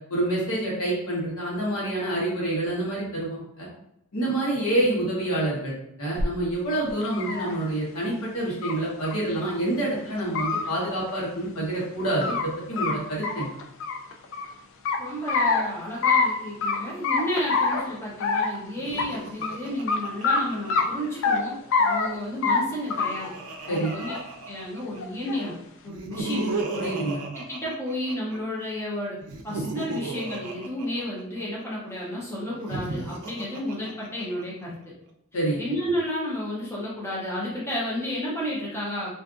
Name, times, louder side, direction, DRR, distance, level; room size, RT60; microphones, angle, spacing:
voice 1, 0.1-3.7 4.1-12.4 12.7-13.5 23.7-23.9 26.7-27.3 35.3-35.6, right 1 dB, 90° left, -5 dB, 1.1 m, -27 dB
sound 1, 6.2-6.3 6.9-7.5 8.6-8.7 9.0-9.1 9.5-9.6 10.2-10.6 11.8-12.4 12.8-12.9 13.2-14.5 14.9-15.6 16.0-16.3 16.6-16.8 17.0-17.8 18.2-18.6 19.0-19.1 19.4-19.5 19.9-20.0 20.2-20.4 20.7-21.4 21.7-22.1 22.4-22.6 22.9-23.3 23.7-24.2 25.0-25.5, left 4 dB, 60° left, 0.4 m, -24 dB
voice 2, 15.0-23.3 23.7-24.1 24.5-25.6 25.8-26.5 27.4-29.2 29.4-34.8 35.6-39.2, equal, 10° left, -7 dB, 0.8 m, -32 dB
Laughter, 18.8-21.3 22.6-25.0 25.9-28.4 29.2-31.6 32.5-34.4, right 3 dB, 90° right, 0.4 m, -35 dB
2.5 x 2.4 x 2.4 m, 0.78 s
head